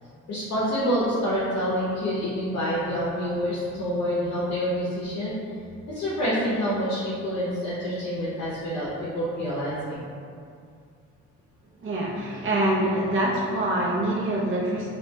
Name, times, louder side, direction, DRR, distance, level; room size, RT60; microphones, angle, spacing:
voice 1, 0.3-5.4 5.9-10.0, equal, 55° left, -8 dB, 0.7 m, -27 dB
voice 2, 11.8-14.9, right 1 dB, 40° right, -4 dB, 0.7 m, -25 dB
2.7 x 2.4 x 2.2 m, 2.3 s
cardioid pair, 90°, 30 cm